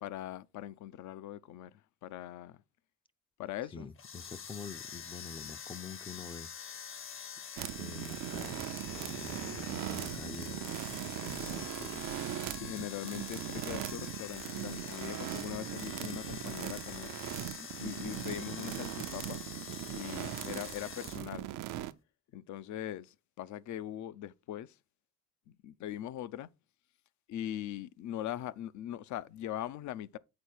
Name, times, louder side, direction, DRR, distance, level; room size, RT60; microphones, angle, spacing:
voice 1, 0.0-1.7 2.0-2.6 3.4-3.9 12.6-17.1 17.8-19.4 19.9-21.5 22.3-24.8 25.5-26.5 27.3-30.2, left 12 dB, 70° left, 0.5 m, -41 dB
voice 2, 3.7-6.5 7.8-12.1 17.6-18.5, left 5 dB, 20° left, 0.3 m, -47 dB
sound 1, 4.0-21.2, left 7 dB, 45° left, 0.8 m, -45 dB
sound 2, 7.6-21.9, right 14 dB, 85° right, 0.6 m, -40 dB
8.7 x 3.9 x 4.5 m
cardioid pair, 90°, 30 cm